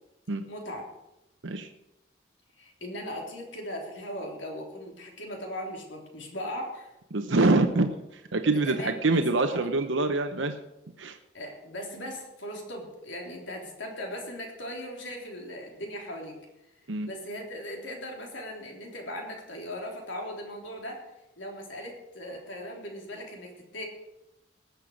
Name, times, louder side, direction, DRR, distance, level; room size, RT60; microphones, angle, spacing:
voice 1, 0.5-0.8 2.6-6.9 8.6-9.2 11.3-16.3 17.0-21.0 21.4-23.8, equal, 90° left, 1 dB, 3.5 m, -38 dB
voice 2, 7.1-10.5 11.0-11.2 16.9-17.1, right 2 dB, 85° right, 6 dB, 0.8 m, -25 dB
19.5 x 6.8 x 6.4 m, 0.92 s
head